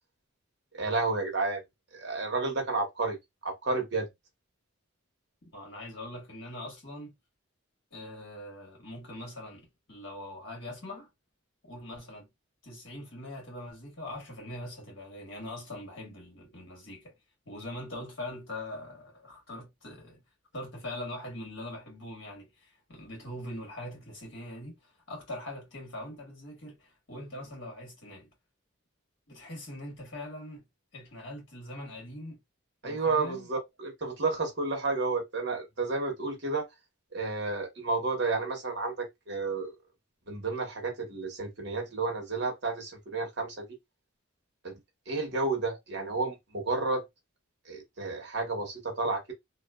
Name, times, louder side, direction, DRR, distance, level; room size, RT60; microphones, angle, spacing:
voice 1, 0.7-1.6 1.9-3.2 3.4-4.1 32.8-36.7 37.1-39.7 40.3-43.6 44.6-44.8 45.1-47.0 47.7-49.3, right 3 dB, 50° right, 1.1 m, -31 dB
voice 2, 5.5-7.1 7.9-11.1 11.6-12.3 12.6-17.1 17.5-20.2 20.5-28.3 29.3-30.6 30.9-32.4 32.8-33.5, left 1 dB, 60° left, 1.6 m, -42 dB
2.9 x 2.5 x 2.3 m
head